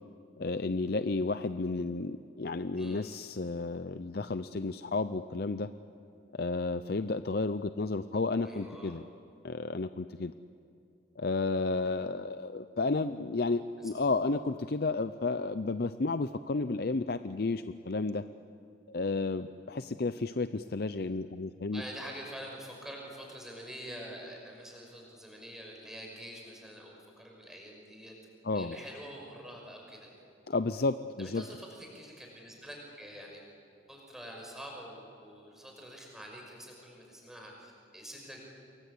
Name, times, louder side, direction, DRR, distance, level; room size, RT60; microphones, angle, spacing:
voice 1, 0.4-5.7 6.3-9.0 9.4-10.3 11.2-18.2 18.9-21.8 28.4-28.8 30.5-31.4, left 3 dB, 50° left, 11 dB, 0.6 m, -32 dB
voice 2, 8.4-9.0 13.8-13.9 21.7-28.2 28.5-30.1 31.2-33.4 33.9-38.4, equal, ahead, 0 dB, 5.8 m, -46 dB
28.5 x 22.0 x 8.6 m, 2.6 s
head